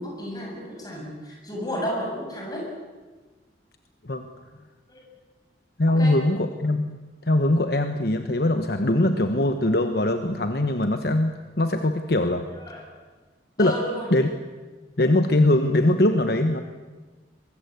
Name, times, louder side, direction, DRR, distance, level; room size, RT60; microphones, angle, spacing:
voice 1, 0.0-2.7 4.9-5.1 5.9-6.2 12.5-12.9 13.6-14.1, equal, 20° left, 0 dB, 7.1 m, -32 dB
voice 2, 5.8-7.0 7.3-12.4 13.6-13.7 14.1-14.3 15.0-16.6, left 1 dB, 55° left, 7 dB, 1.1 m, -21 dB
23.0 x 22.0 x 8.2 m, 1.3 s
head